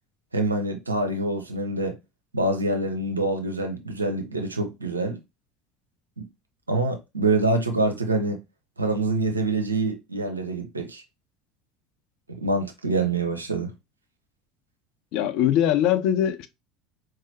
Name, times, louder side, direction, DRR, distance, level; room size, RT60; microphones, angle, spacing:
voice 1, 0.3-2.0 2.3-5.2 6.2-6.3 6.7-8.4 8.8-11.0 12.3-13.7, right 2 dB, 85° right, 0.8 m, -25 dB
voice 2, 15.1-16.5, left 10 dB, 55° left, 0.6 m, -21 dB
4.6 x 2.9 x 2.9 m
figure-of-eight pair, 70°, 0 cm